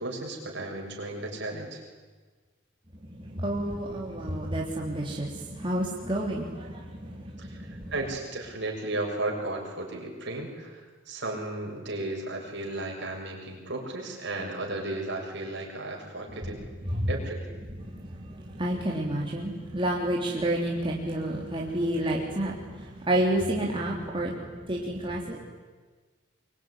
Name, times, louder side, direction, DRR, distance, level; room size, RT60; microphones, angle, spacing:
voice 1, 0.0-1.8 7.4-16.6 17.1-17.6, right 2 dB, 60° right, 0 dB, 6.8 m, -34 dB
voice 2, 3.0-7.9 16.5-17.1 17.6-25.4, right 1 dB, 25° right, -2 dB, 3.3 m, -30 dB
24.0 x 23.5 x 9.9 m, 1.4 s
head